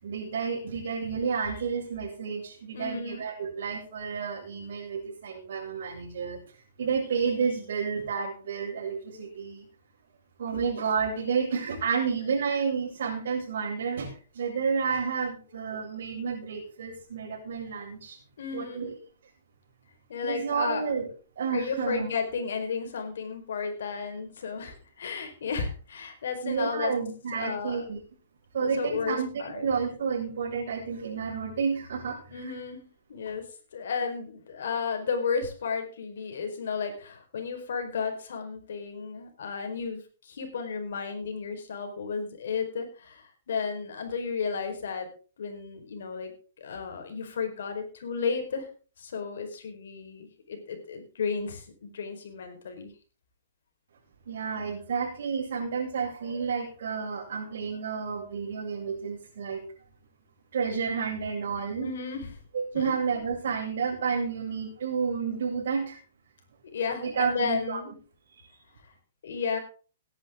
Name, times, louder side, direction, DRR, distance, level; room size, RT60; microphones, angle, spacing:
voice 1, 0.0-6.4 6.8-9.7 10.4-18.2 18.5-19.0 20.2-21.1 21.4-22.1 26.4-28.0 28.5-32.4 54.3-59.6 60.5-61.9 62.5-66.0 67.0-67.8 68.3-68.5, right 6 dB, 70° right, -5 dB, 6.1 m, -30 dB
voice 2, 2.7-3.2 18.4-18.8 20.1-20.8 21.5-26.9 27.3-27.8 28.6-29.7 32.3-33.4 33.7-45.1 45.4-48.7 49.0-52.9 61.8-62.4 62.7-62.8 66.7-67.9 69.2-69.6, left 5 dB, 75° left, 5 dB, 4.9 m, -33 dB
17.0 x 11.0 x 3.9 m, 0.38 s
hypercardioid pair, 160°, 0 cm